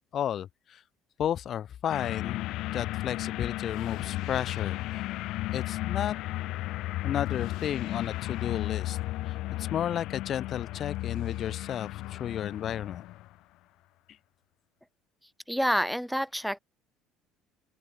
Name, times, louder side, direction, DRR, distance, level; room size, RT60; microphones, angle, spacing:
voice 1, 0.1-0.8 1.2-2.5 2.7-5.0 5.5-6.2 7.0-9.0 9.3-13.0, left 10 dB, 50° left, 3.9 m, -33 dB
sound 1, 1.9-13.3, left 17 dB, 70° left, 7.3 m, -34 dB
voice 2, 15.5-16.6, equal, ahead, 4.3 m, -28 dB
open air
cardioid pair, 105°, 0 cm